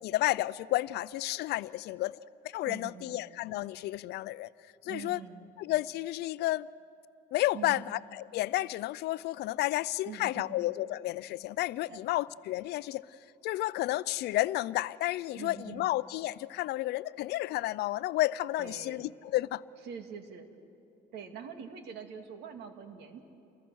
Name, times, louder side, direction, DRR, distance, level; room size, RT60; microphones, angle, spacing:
voice 1, 0.0-2.2 2.5-4.5 4.9-5.2 5.6-6.7 7.3-13.0 13.4-19.6, left 16 dB, 75° left, 0.5 m, -31 dB
voice 2, 2.6-3.2 4.8-5.5 7.5-7.8 10.0-10.6 11.9-12.0 15.3-15.9 18.6-19.0 19.8-20.5 21.1-23.2, right 7 dB, 80° right, 2.2 m, -44 dB
29.5 x 22.5 x 6.3 m
cardioid pair, 110°, 17 cm